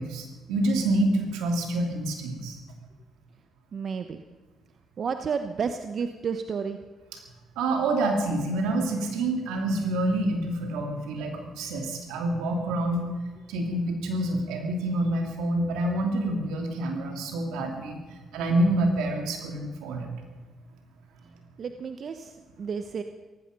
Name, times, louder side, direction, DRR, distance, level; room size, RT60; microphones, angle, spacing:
voice 1, 0.0-2.6 7.1-7.2 7.6-13.1 13.5-18.0 18.3-20.1, right 1 dB, 85° right, 3 dB, 2.8 m, -27 dB
voice 2, 3.7-4.2 5.0-6.8 21.6-23.0, right 6 dB, 55° right, 8 dB, 0.9 m, -31 dB
17.5 x 15.5 x 5.3 m, 1.3 s
supercardioid pair, 60°, 0 cm